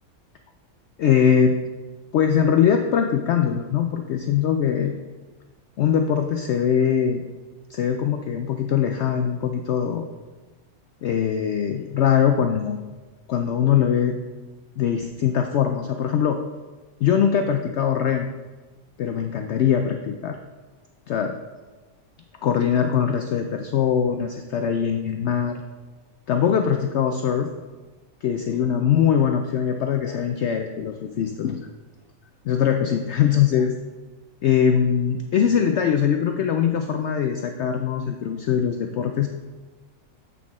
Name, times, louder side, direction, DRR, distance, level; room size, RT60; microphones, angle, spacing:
voice 1, 1.0-1.6 2.1-4.9 5.8-7.2 7.7-10.1 11.0-12.8 13.3-14.2 14.8-16.4 17.0-18.3 19.0-20.4 21.1-21.4 22.4-25.6 26.3-27.5 28.2-31.6 32.4-33.8 34.4-39.3, left 8 dB, 65° left, 5 dB, 0.7 m, -22 dB
8.3 x 6.1 x 3.6 m, 1.3 s
omnidirectional pair, 1.5 m